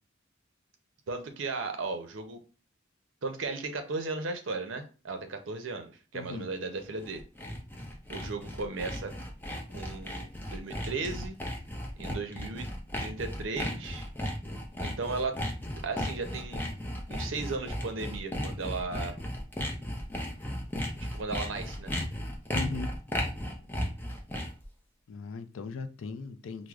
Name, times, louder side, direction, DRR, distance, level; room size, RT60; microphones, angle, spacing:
voice 1, 1.1-2.4 3.2-7.2 8.1-9.1 9.7-11.4 12.0-12.7 13.0-14.1 14.8-15.4 15.8-16.7 17.1-19.2 21.0-21.9, right 3 dB, 70° right, 0.6 m, -36 dB
voice 2, 6.1-6.5 22.5-23.0 25.1-26.7, left 4 dB, 75° left, 0.4 m, -38 dB
Sawing, 6.8-24.7, left 1 dB, 10° left, 0.5 m, -35 dB
4.7 x 2.0 x 2.3 m
head